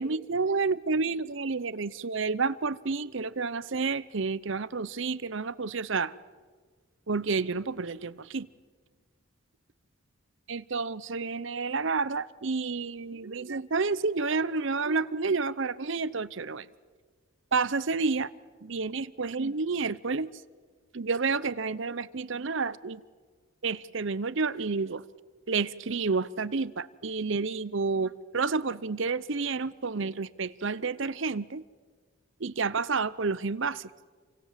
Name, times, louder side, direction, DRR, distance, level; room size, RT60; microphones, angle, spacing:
voice 1, 0.0-6.1 7.1-8.5 10.5-16.7 17.5-18.3 18.6-20.3 20.9-23.0 23.6-25.0 25.5-31.6 32.4-33.9, right 4 dB, 60° right, 17 dB, 0.8 m, -30 dB
29.0 x 24.5 x 7.5 m, 1.5 s
head